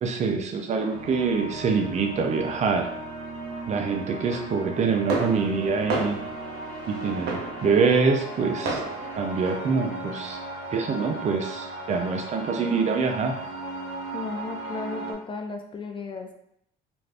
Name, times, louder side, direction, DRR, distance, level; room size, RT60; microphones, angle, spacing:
voice 1, 0.0-2.8 3.7-6.2 6.9-8.8 9.2-10.4 10.7-13.3, right 5 dB, 45° right, 3 dB, 0.5 m, -25 dB
sound 1, 0.8-2.1 2.5-3.0 3.3-10.4, right 3 dB, 75° right, 0.8 m, -35 dB
sound 2, 0.9-15.1, right 2 dB, 80° left, 1.3 m, -36 dB
voice 2, 14.1-16.3, left 4 dB, 30° left, 4 dB, 0.4 m, -34 dB
2.5 x 2.4 x 3.3 m, 0.74 s
cardioid pair, 110°, 17 cm